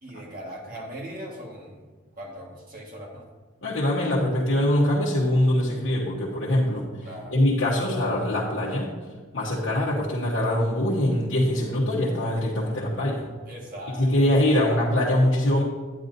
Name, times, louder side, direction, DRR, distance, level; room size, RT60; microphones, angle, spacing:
voice 1, 0.0-1.8 2.1-3.2 7.0-7.4 13.4-14.3, equal, 45° right, -2 dB, 1.6 m, -39 dB
voice 2, 3.6-6.9 7.3-8.9 9.3-13.2 14.0-15.6, left 1 dB, 70° left, -6 dB, 1.1 m, -23 dB
10.0 x 9.7 x 2.7 m, 1.4 s
head